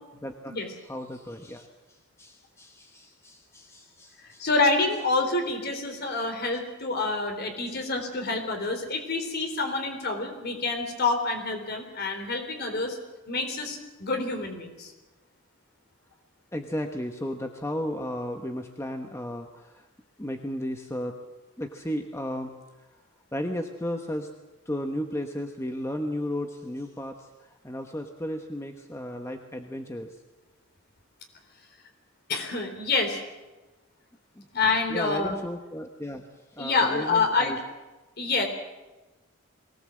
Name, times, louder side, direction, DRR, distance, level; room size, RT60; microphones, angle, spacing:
voice 1, 0.2-0.6 0.9-4.5 7.7-7.8 16.5-19.9 20.2-21.1 21.6-22.5 23.3-24.3 24.7-30.2 34.4-34.5 34.9-36.2 36.5-37.6, left 1 dB, 15° left, 4 dB, 1.1 m, -34 dB
voice 2, 4.2-13.0 13.3-14.9 32.3-33.2 34.5-35.3 36.6-37.6 38.2-38.5, left 3 dB, 50° left, 5 dB, 3.7 m, -27 dB
22.5 x 18.0 x 7.7 m, 1.1 s
head